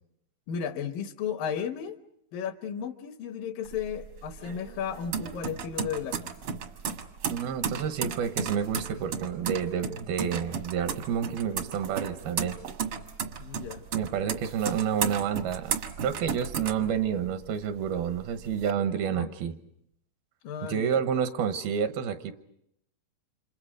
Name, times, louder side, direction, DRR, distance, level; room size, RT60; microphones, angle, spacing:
voice 1, 0.5-2.0 2.3-6.3 13.4-13.8 16.8-16.9 19.1-19.3 20.4-21.0, left 7 dB, 70° left, 8 dB, 2.6 m, -34 dB
sound 1, 3.7-17.5 17.9-18.7, right 6 dB, 65° right, 1.3 m, -34 dB
voice 2, 7.3-12.6 13.9-19.6 20.7-22.3, right 8 dB, 85° right, 9 dB, 3.0 m, -29 dB
30.0 x 27.0 x 5.1 m, 0.76 s
omnidirectional pair, 4.3 m